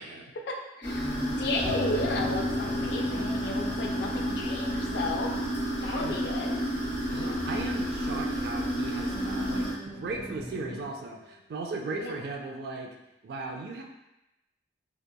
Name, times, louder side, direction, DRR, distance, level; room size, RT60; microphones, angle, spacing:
voice 1, 0.0-5.3 5.8-6.6 7.2-7.6 12.0-12.2, left 2 dB, 60° left, 2 dB, 0.3 m, -34 dB
sound 1, 0.8-9.7, equal, 40° left, 1.0 m, -31 dB
sound 2, 0.9-10.9, equal, 5° right, 0.7 m, -43 dB
sound 3, 1.6-11.3, left 2 dB, 90° left, 1.2 m, -43 dB
voice 2, 5.8-6.2 7.1-12.9 13.2-13.8, right 3 dB, 55° right, 2 dB, 0.3 m, -37 dB
2.8 x 2.1 x 2.2 m, 0.93 s
head